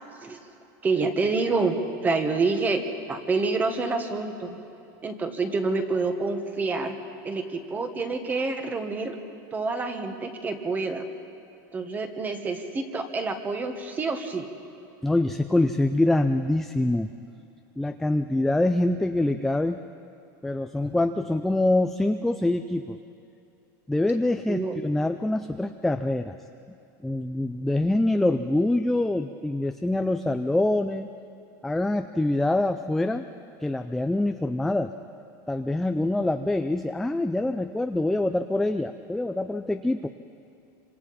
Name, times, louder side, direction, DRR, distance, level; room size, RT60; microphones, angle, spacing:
voice 1, 0.8-2.8 3.1-4.6 5.0-7.0 7.2-9.2 9.5-11.1 11.7-14.5 24.5-24.8, right 3 dB, 15° right, 6 dB, 1.5 m, -27 dB
voice 2, 15.0-17.1 17.8-19.8 20.4-23.0 23.9-26.4 27.0-31.1 31.6-33.2 33.6-34.9 35.5-40.1, left 2 dB, 5° left, 6 dB, 0.4 m, -25 dB
26.5 x 26.0 x 4.3 m, 2.7 s
supercardioid pair, 160°, 10 cm